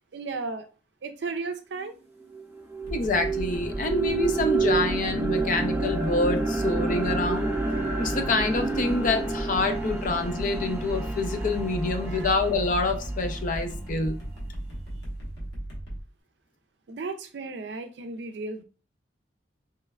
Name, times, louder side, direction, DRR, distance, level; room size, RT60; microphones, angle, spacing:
voice 1, 0.1-0.7 1.0-2.0 12.1-12.3 16.9-18.6, right 3 dB, 65° right, 8 dB, 0.4 m, -34 dB
sound 1, 1.8-1.9 2.3-14.3, right 3 dB, 10° right, 0.5 m, -30 dB
sound 2, 2.8-16.0, right 1 dB, 70° left, 1.1 m, -35 dB
voice 2, 2.9-7.5 8.0-14.2, left 3 dB, 45° left, 6 dB, 0.5 m, -27 dB
3.2 x 3.0 x 2.3 m, 0.35 s
head